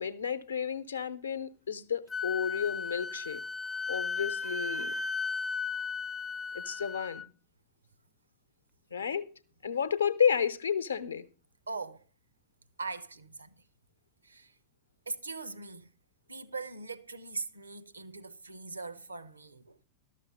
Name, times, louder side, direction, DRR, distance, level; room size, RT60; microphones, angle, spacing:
voice 1, 0.0-3.4 3.9-5.0 6.5-7.2 8.9-9.3 9.6-11.3, left 7 dB, 75° left, 0.7 m, -31 dB
Wind instrument woodwind instrument, 2.1-7.3, left 4 dB, 15° left, 0.4 m, -35 dB
voice 2, 11.7-12.0 12.8-13.5 14.2-14.5 15.1-15.9 16.3-19.8, right 3 dB, 80° right, 0.7 m, -41 dB
12.5 x 6.6 x 5.4 m
figure-of-eight pair, 90°, 0 cm